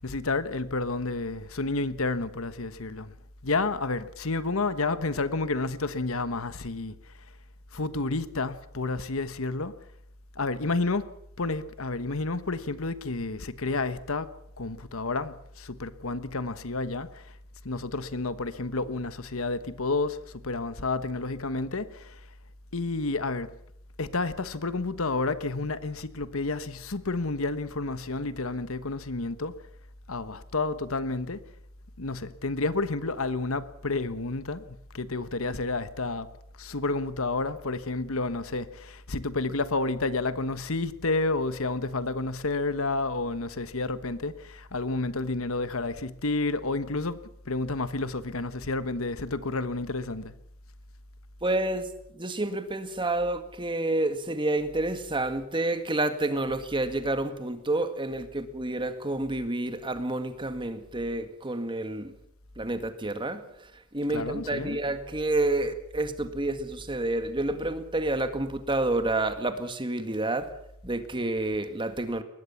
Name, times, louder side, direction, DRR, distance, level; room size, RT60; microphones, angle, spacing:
voice 1, 0.0-3.1 3.4-6.9 7.7-9.7 10.4-11.1 11.4-14.3 14.6-17.3 17.6-22.2 22.7-23.5 24.0-29.5 30.1-31.4 32.0-34.7 34.9-36.3 36.6-47.2 47.4-50.3 64.1-64.8, left 3 dB, 70° left, 1.3 m, -30 dB
voice 2, 51.4-62.1 62.6-70.5 70.8-72.2, right 2 dB, 25° right, 2.0 m, -29 dB
22.0 x 20.0 x 7.2 m
head